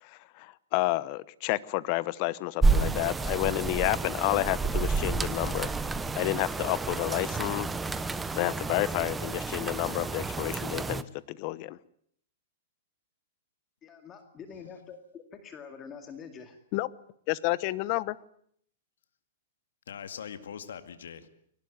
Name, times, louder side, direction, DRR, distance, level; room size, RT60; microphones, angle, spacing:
voice 1, 0.0-5.8 6.1-7.7 8.0-8.1 8.3-11.8 16.7-16.9 17.3-18.2, left 19 dB, 40° left, 19 dB, 1.0 m, -30 dB
sound 1, 2.6-11.0, right 4 dB, 10° right, 0.9 m, -30 dB
voice 2, 13.8-16.6, left 6 dB, 20° left, 7 dB, 2.3 m, -46 dB
voice 3, 19.9-21.3, left 8 dB, 90° left, 10 dB, 2.2 m, -42 dB
22.5 x 19.0 x 9.3 m, 0.66 s
hypercardioid pair, 155°, 0 cm